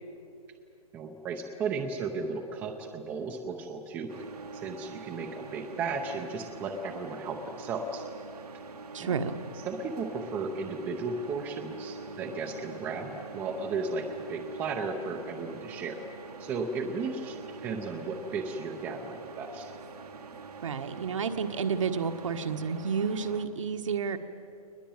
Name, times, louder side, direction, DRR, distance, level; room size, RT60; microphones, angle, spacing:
voice 1, 0.9-4.1 4.5-8.1 9.0-9.2 9.7-16.0 16.4-19.7, right 4 dB, 10° right, 4 dB, 0.7 m, -35 dB
sound 1, 4.1-23.5, right 4 dB, 80° right, 2.1 m, -44 dB
voice 2, 8.9-9.4 20.6-24.2, right 6 dB, 55° right, 7 dB, 1.5 m, -30 dB
21.5 x 20.5 x 8.9 m, 2.7 s
hypercardioid pair, 165°, 20 cm